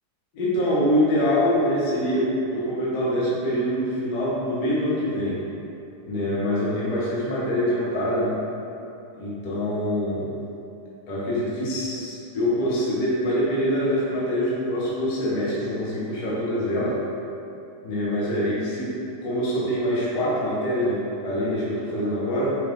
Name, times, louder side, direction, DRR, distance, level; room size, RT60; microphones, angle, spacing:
voice 1, 0.3-5.3 6.0-8.3 9.2-10.3 11.1-16.9 17.8-22.6, equal, 45° left, -8 dB, 1.2 m, -24 dB
4.9 x 3.1 x 2.6 m, 2.8 s
figure-of-eight pair, 90°, 0 cm